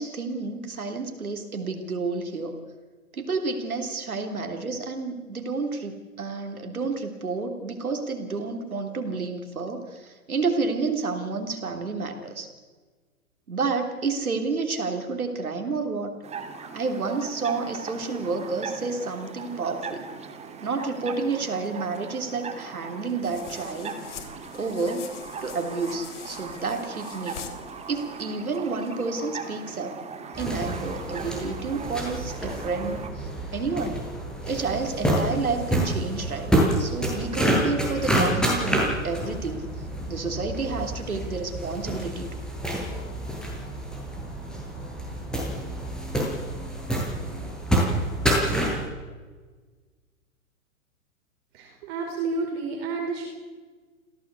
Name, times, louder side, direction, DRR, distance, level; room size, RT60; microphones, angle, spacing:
voice 1, 0.0-2.5 3.1-12.5 13.5-16.1 16.7-20.1 20.6-24.3 24.5-27.4 27.9-30.0 30.4-34.0 34.4-39.6 40.1-42.4, right 4 dB, 85° right, 5 dB, 3.5 m, -30 dB
sound 1, 16.2-33.1, right 5 dB, 15° right, 2.6 m, -39 dB
sound 2, 23.2-28.3, left 9 dB, 55° left, 3.5 m, -44 dB
Shoes cleaning, 30.3-48.8, right 1 dB, ahead, 7.1 m, -28 dB
voice 2, 51.5-53.2, right 3 dB, 45° right, 1 dB, 4.9 m, -30 dB
28.0 x 17.0 x 8.3 m, 1.4 s
hypercardioid pair, 120°, 42 cm